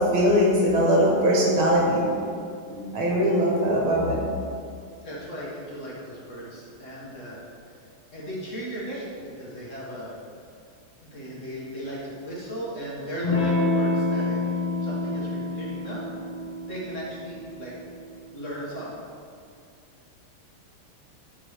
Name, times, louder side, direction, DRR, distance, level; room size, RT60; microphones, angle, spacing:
voice 1, 0.0-2.0 2.7-4.3, equal, 80° right, -3 dB, 2.3 m, -21 dB
voice 2, 5.0-7.4 8.1-9.1 9.4-10.1 11.0-16.0 16.6-17.7 18.3-19.0, equal, 40° left, -6 dB, 1.6 m, -36 dB
Electric guitar / Strum, 13.2-18.3, left 2 dB, 25° left, 1.1 m, -28 dB
7.7 x 3.8 x 6.5 m, 2.3 s
omnidirectional pair, 2.2 m